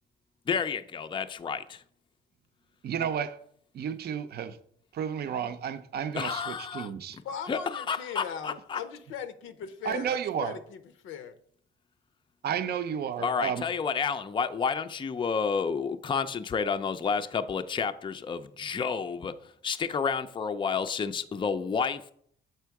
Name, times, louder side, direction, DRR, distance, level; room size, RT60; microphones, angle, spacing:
voice 1, 0.5-1.8 6.1-6.9 7.5-8.8 13.2-19.4 19.6-22.1, left 6 dB, 25° left, 0.4 m, -30 dB
voice 2, 2.8-3.4 3.7-4.6 4.9-7.2 9.8-10.6 12.4-13.7, right 8 dB, 55° right, 0.6 m, -32 dB
voice 3, 7.2-11.4, left 7 dB, 85° left, 0.6 m, -39 dB
6.8 x 4.4 x 4.6 m
cardioid pair, 90°, 20 cm